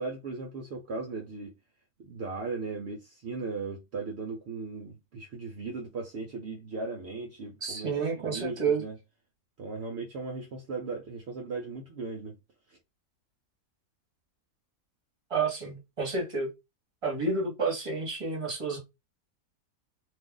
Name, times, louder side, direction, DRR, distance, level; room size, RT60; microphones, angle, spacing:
voice 1, 0.0-1.5 2.0-9.0 9.6-12.4 12.7-12.8, right 3 dB, 65° right, 0.6 m, -37 dB
voice 2, 7.6-8.8 15.3-16.5 17.0-18.8, right 4 dB, 25° right, 1.0 m, -30 dB
2.6 x 2.4 x 3.7 m
omnidirectional pair, 1.7 m